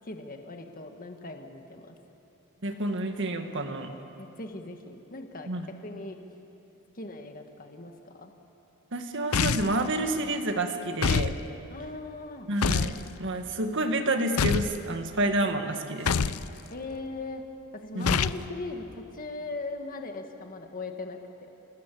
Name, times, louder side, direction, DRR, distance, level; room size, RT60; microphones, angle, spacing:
voice 1, 0.0-2.0 4.2-6.2 6.9-8.3 11.7-12.5 16.7-17.4 17.7-21.5, left 2 dB, 40° left, 4 dB, 1.7 m, -39 dB
voice 2, 2.6-3.9 5.5-5.7 8.9-11.3 12.5-12.9 13.2-16.4 18.0-18.2, right 2 dB, 55° right, 6 dB, 1.9 m, -29 dB
sound 1, 9.3-9.8 11.0-11.4 12.6-13.0 14.4-14.8 16.1-16.4 18.0-18.4, left 6 dB, 70° left, 0.6 m, -25 dB
28.0 x 20.0 x 8.5 m, 2.9 s
head